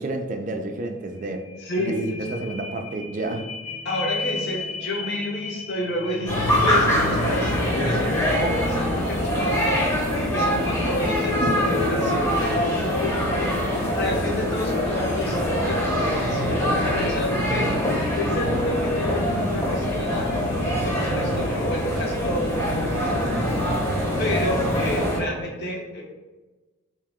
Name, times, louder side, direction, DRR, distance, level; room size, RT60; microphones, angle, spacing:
voice 1, 0.0-1.4 1.8-3.5 11.4-11.6 23.3-23.7, right 2 dB, 40° right, 5 dB, 0.4 m, -30 dB
sound 1, 0.8-0.9 1.2-17.1 17.6-17.7, left 5 dB, 30° left, 0.3 m, -36 dB
voice 2, 1.6-2.3 3.8-9.8 10.3-12.4 12.9-17.7 18.2-20.3 20.8-22.8 24.2-26.0, left 1 dB, 55° left, -2 dB, 0.9 m, -30 dB
sound 2, 6.3-25.2, equal, 15° left, 0.8 m, -24 dB
3.3 x 2.8 x 3.5 m, 1.2 s
head